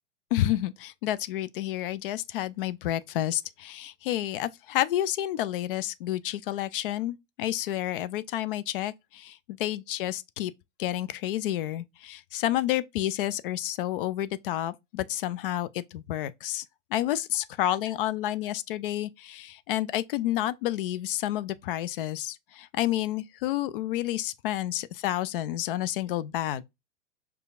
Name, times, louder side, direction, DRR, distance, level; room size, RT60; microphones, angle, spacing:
voice 1, 0.3-10.5 10.8-16.6 16.9-26.6, left 13 dB, 50° left, 0.4 m, -30 dB
6.5 x 2.3 x 2.4 m
figure-of-eight pair, 95°, 37 cm